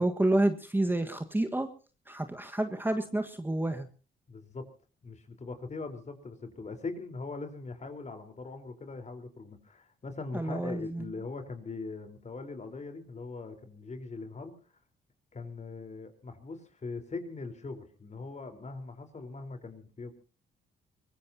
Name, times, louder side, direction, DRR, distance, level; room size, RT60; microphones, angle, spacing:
voice 1, 0.0-1.7 2.1-3.9 10.3-11.0, right 1 dB, 10° right, 6 dB, 1.5 m, -29 dB
voice 2, 4.3-4.6 5.0-14.5 15.3-20.1, left 3 dB, 35° left, 8 dB, 4.2 m, -41 dB
23.5 x 21.0 x 2.8 m, 0.36 s
cardioid pair, 90°, 20 cm